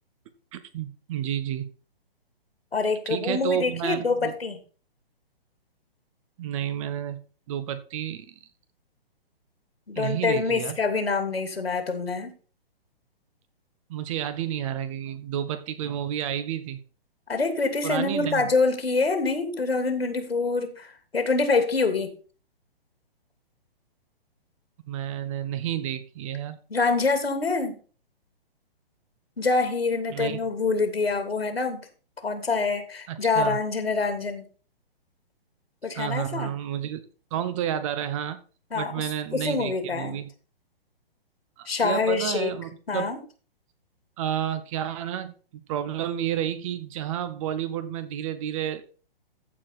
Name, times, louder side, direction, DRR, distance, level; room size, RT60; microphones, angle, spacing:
voice 1, 0.5-1.6 3.1-4.3 6.4-7.2 7.5-8.3 9.9-10.8 13.9-16.8 17.8-18.5 24.9-26.6 30.1-30.4 33.1-33.6 35.9-37.0 37.3-38.4 38.7-40.3 41.6-43.2 44.2-45.3 45.7-49.0, right 10 dB, 35° right, 1.1 m, -30 dB
voice 2, 2.7-4.6 9.9-12.3 17.3-22.1 26.7-27.8 29.4-31.9 32.2-34.5 35.8-36.5 38.7-40.2 41.7-42.5 42.9-43.2, left 4 dB, 85° left, 2.7 m, -26 dB
14.5 x 4.9 x 4.3 m
figure-of-eight pair, 130°, 30 cm